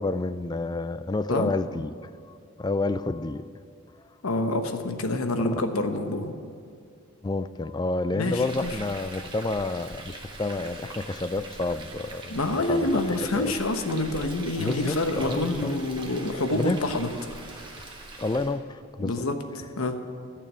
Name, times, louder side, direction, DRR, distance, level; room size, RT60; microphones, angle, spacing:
voice 1, 0.0-1.9 2.3-3.5 5.4-5.6 7.2-12.4 12.7-13.5 14.6-15.8 16.5-16.9 18.2-19.2, left 2 dB, 20° left, 13 dB, 0.3 m, -29 dB
voice 2, 4.2-6.3 8.1-8.7 12.3-17.1 19.0-19.3 19.8-20.0, left 2 dB, 85° left, 7 dB, 1.1 m, -27 dB
Frying (food), 8.2-18.6, right 2 dB, 20° right, 1.4 m, -42 dB
15.5 x 6.7 x 8.6 m, 2.3 s
head